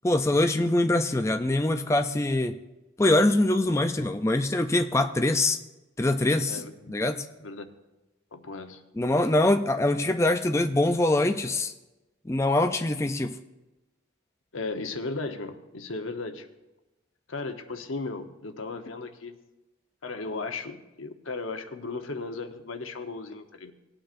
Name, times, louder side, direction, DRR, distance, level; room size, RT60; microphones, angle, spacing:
voice 1, 0.0-2.5 3.0-5.6 6.0-6.6 6.9-7.2 9.0-11.7 12.3-13.4, left 2 dB, 15° left, 6 dB, 0.3 m, -23 dB
voice 2, 6.5-6.9 7.4-7.7 8.3-8.8 14.5-16.5 17.3-19.3 20.0-23.7, left 3 dB, 85° left, 7 dB, 1.0 m, -36 dB
18.5 x 8.9 x 2.5 m, 1.0 s
head